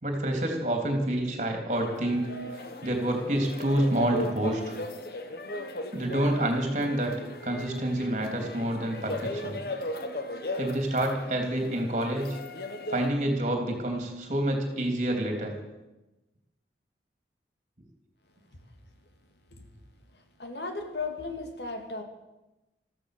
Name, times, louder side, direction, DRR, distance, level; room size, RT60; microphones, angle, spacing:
voice 1, 0.0-2.3 2.8-4.8 5.9-7.1 7.4-9.6 10.6-12.4 12.9-15.5, right 1 dB, 40° right, 3 dB, 3.1 m, -28 dB
sound 1, 1.7-13.1, left 1 dB, 55° left, 1.3 m, -37 dB
voice 2, 20.4-22.0, left 3 dB, 75° left, 5 dB, 2.3 m, -35 dB
14.0 x 14.0 x 6.7 m, 1.0 s
head